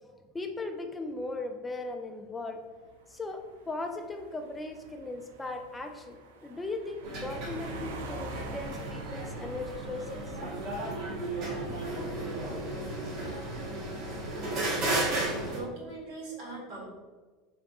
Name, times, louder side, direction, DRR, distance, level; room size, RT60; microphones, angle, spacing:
voice 1, 0.0-2.7 3.1-6.2 6.4-10.4 11.7-11.8, left 2 dB, 15° left, 5 dB, 0.3 m, -38 dB
sound 1, 2.7-13.0, right 3 dB, 90° right, 0.4 m, -48 dB
sound 2, 7.0-15.6, right 2 dB, 55° right, 1.2 m, -34 dB
voice 2, 15.5-16.9, right 3 dB, 70° right, -4 dB, 1.4 m, -40 dB
3.5 x 3.4 x 2.3 m, 1.3 s
supercardioid pair, 115°, 0 cm